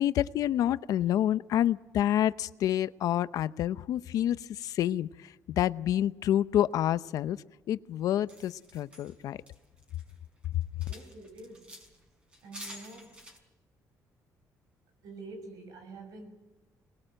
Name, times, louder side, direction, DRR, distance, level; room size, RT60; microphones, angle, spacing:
voice 1, 0.0-7.4 7.7-9.4 10.5-10.6, left 11 dB, 70° left, 0.7 m, -28 dB
sound 1, 8.3-10.1 10.4-12.0 12.3-13.4, equal, 20° right, 5.2 m, -49 dB
voice 2, 10.7-11.8 12.4-13.3 15.0-16.3, right 2 dB, 75° right, 6.0 m, -47 dB
25.5 x 20.5 x 7.7 m
cardioid pair, 140°, 6 cm